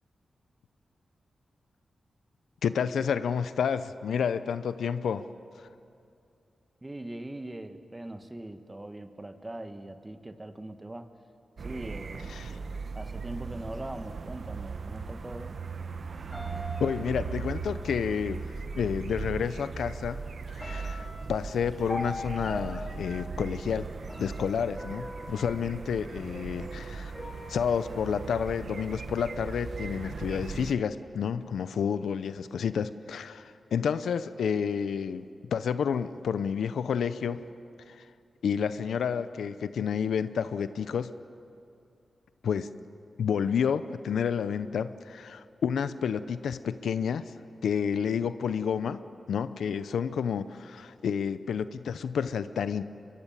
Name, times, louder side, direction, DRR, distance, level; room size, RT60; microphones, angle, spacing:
voice 1, 2.6-5.3 12.3-12.6 16.8-18.4 18.8-20.2 20.5-23.9 24.2-27.1 27.5-35.2 35.5-37.4 37.9-38.0 38.4-41.1 42.4-42.7 43.2-47.3 47.6-49.0 49.3-52.8, left 7 dB, 85° left, 13 dB, 0.7 m, -30 dB
voice 2, 6.8-11.1 11.6-15.5, right 1 dB, 20° right, 8 dB, 1.5 m, -41 dB
sound 1, 11.6-30.7, right 5 dB, 60° right, 1.1 m, -38 dB
sound 2, 16.3-17.8 18.9-19.0 19.5-20.1 20.6-26.5 27.1-27.9, left 1 dB, 10° left, 4.4 m, -42 dB
23.0 x 22.5 x 7.4 m, 2.5 s
cardioid pair, 60°, 0 cm